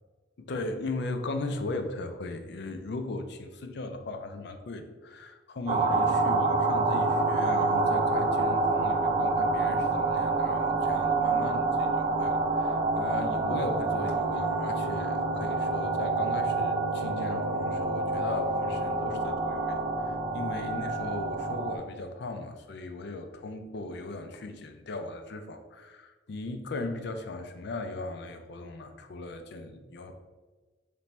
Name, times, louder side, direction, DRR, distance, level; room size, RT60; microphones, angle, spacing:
voice 1, 0.4-30.1, left 2 dB, 60° left, 7 dB, 0.4 m, -37 dB
sound 1, 5.7-21.8, right 3 dB, 30° right, 0.3 m, -27 dB
3.3 x 3.0 x 4.1 m, 1.3 s
head